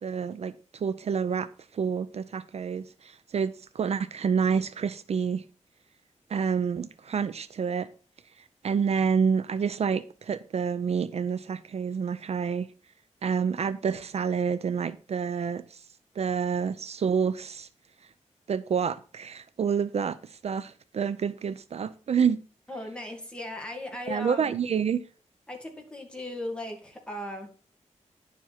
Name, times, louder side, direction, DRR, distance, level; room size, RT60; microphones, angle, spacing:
voice 1, 0.0-5.4 6.3-7.9 8.6-12.7 13.2-15.8 16.2-17.7 18.5-22.4 24.1-25.0, right 6 dB, 60° right, 0.5 m, -28 dB
voice 2, 22.7-24.6 25.5-27.5, left 1 dB, 10° left, 2.3 m, -37 dB
10.5 x 7.2 x 4.3 m
wide cardioid pair, 160°, 12 cm